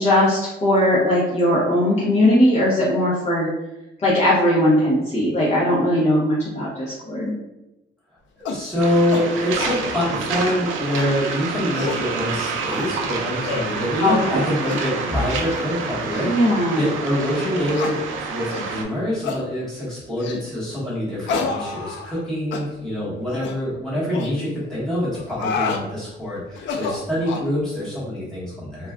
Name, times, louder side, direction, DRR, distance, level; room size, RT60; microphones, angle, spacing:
voice 1, 0.0-3.5 4.0-7.3 14.0-14.5 16.3-16.8, left 1 dB, 35° left, -8 dB, 0.7 m, -19 dB
voice 2, 8.4-18.0 18.3-28.9, left 1 dB, 5° left, -10 dB, 1.1 m, -25 dB
sound 1, 8.5-8.7 9.1-9.3 9.6-9.8 10.2-10.6 11.0-11.1 11.6-12.1 12.7-13.0 13.4-13.7 14.0-14.2 14.7-14.9 15.4-15.7 16.1-16.2 16.8-16.9 17.7-18.0 18.5-18.7 19.2-19.4 20.2-20.5 21.3-22.2 22.5-22.7 23.3-23.6 24.1-24.3 25.1-25.8 26.6-27.5, left 4 dB, 70° left, 0.4 m, -29 dB
Waves surf, 8.8-18.8, right 4 dB, 85° right, 0.5 m, -28 dB
2.4 x 2.2 x 3.4 m, 0.95 s
cardioid pair, 165°, 20 cm